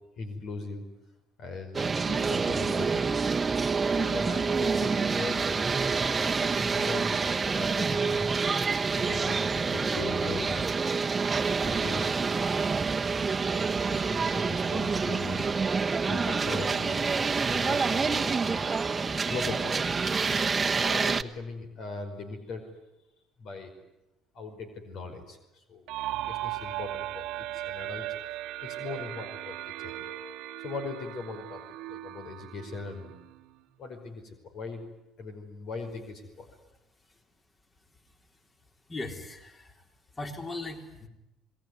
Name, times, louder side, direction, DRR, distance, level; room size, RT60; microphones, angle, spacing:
voice 1, 0.2-0.8 1.4-3.2 3.9-5.5 6.2-8.3 9.0-10.7 11.6-12.1 13.5-15.5 16.1-17.0 17.5-18.7 19.3-20.1 20.8-22.7 23.4-23.7 24.3-25.4 25.7-28.1 28.6-29.6 29.8-29.9 30.6-33.1 33.8-34.8 35.2-36.5, left 3 dB, 60° left, 6 dB, 5.1 m, -39 dB
sound 1, 1.7-21.2, right 4 dB, 25° right, 1.2 m, -27 dB
sound 2, 25.9-33.5, right 14 dB, 75° right, 1.2 m, -37 dB
voice 2, 38.9-39.8 40.1-41.1, left 2 dB, 25° left, 4 dB, 4.1 m, -38 dB
27.5 x 21.0 x 9.6 m, 0.93 s
supercardioid pair, 80°, 0 cm